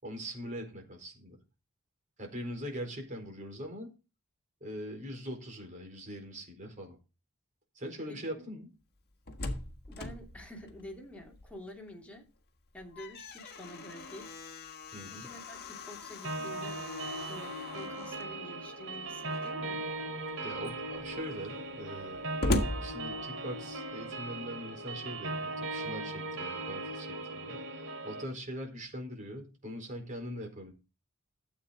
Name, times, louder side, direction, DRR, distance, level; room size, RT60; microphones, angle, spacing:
voice 1, 0.0-1.4 2.2-3.9 4.6-7.0 7.7-8.7 14.9-15.3 20.4-22.2 22.8-30.7, equal, 40° right, 4.4 m, -42 dB
voice 2, 8.1-8.4 9.9-12.3 12.7-14.3 15.1-16.8 17.3-19.9, left 1 dB, 5° left, 2.7 m, -48 dB
Slam, 9.0-11.8 12.1-12.2 12.7-18.3 19.2-19.7 20.3-20.4 20.6-23.7, left 1 dB, 50° left, 1.6 m, -39 dB
sound 1, 16.2-28.2, right 2 dB, 80° right, 3.0 m, -38 dB
13.5 x 8.1 x 3.8 m
head